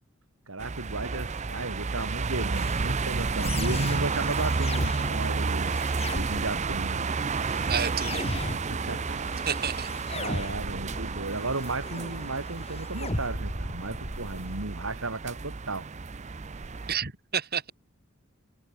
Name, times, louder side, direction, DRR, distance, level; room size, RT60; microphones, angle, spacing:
voice 1, 0.5-5.7 6.1-7.1 8.5-9.2 10.1-15.9, right 2 dB, 90° right, 3.7 m, -35 dB
sound 1, 0.6-16.9, right 4 dB, 35° right, 0.6 m, -31 dB
sound 2, 2.5-14.5, left 1 dB, 30° left, 5.6 m, -38 dB
voice 2, 7.7-8.2 9.4-9.9 16.9-17.7, right 7 dB, 50° right, 4.5 m, -30 dB
head